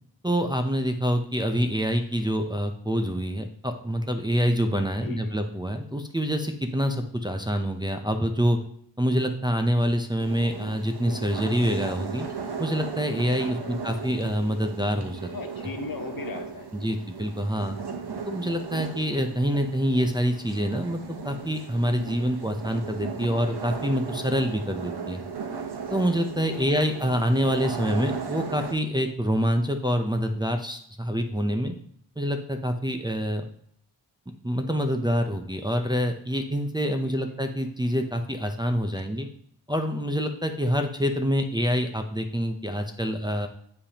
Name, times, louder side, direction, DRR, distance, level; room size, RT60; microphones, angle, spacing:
voice 1, 0.2-8.6 9.0-12.3 12.6-15.3 16.7-17.8 18.2-25.2 25.9-31.8 32.2-33.4 34.4-39.3 39.7-43.5, equal, 10° right, 4 dB, 0.6 m, -26 dB
voice 2, 5.0-5.3 13.5-13.8 15.3-16.9 26.5-26.7 37.0-37.2 38.9-39.1, left 4 dB, 50° left, 7 dB, 0.8 m, -38 dB
sound 1, 10.2-28.7, right 6 dB, 65° right, 0.9 m, -36 dB
9.6 x 3.4 x 2.9 m, 0.67 s
cardioid pair, 45°, 44 cm